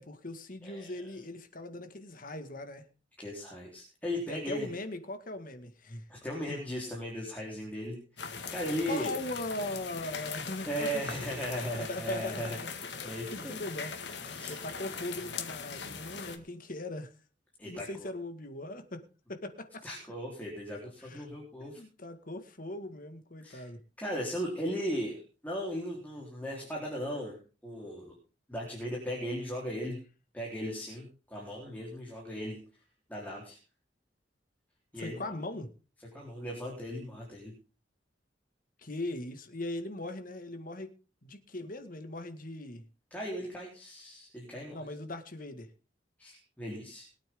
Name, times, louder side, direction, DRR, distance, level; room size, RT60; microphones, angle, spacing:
voice 1, 0.0-2.9 4.3-6.0 6.5-6.6 8.9-11.5 11.7-12.7 13.3-14.1 14.5-17.1 17.6-19.0 19.3-19.8 21.0-21.3 21.6-23.8 35.0-35.7 38.8-41.0 41.2-42.8 44.7-45.7, left 2 dB, 50° left, 8 dB, 2.0 m, -40 dB
voice 2, 0.6-1.1 3.2-4.7 6.1-9.1 10.7-12.6 13.0-13.6 14.2-14.6 17.6-18.1 19.8-21.8 23.4-23.7 24.0-27.4 27.6-28.2 28.5-30.0 30.3-32.6 33.1-33.6 34.9-35.3 36.1-37.5 43.1-44.8 46.2-47.1, equal, 10° left, -3 dB, 4.1 m, -37 dB
sound 1, 8.2-16.4, left 5 dB, 70° left, 2.0 m, -41 dB
22.0 x 9.0 x 3.8 m, 0.35 s
head